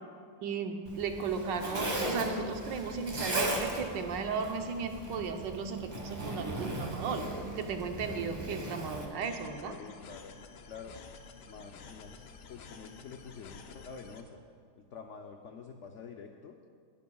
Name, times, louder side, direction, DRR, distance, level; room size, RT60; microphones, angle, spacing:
voice 1, 0.4-7.2 7.5-9.7, right 5 dB, 75° right, 5 dB, 1.5 m, -35 dB
Zipper (clothing), 0.8-9.0, right 1 dB, 25° right, 1.4 m, -37 dB
sound 1, 9.2-14.2, left 5 dB, 70° left, 1.3 m, -51 dB
voice 2, 9.6-10.4 10.6-11.0 11.4-14.4 14.8-16.6, left 5 dB, 90° left, 4 dB, 0.6 m, -48 dB
19.0 x 11.0 x 2.3 m, 2.3 s
omnidirectional pair, 2.0 m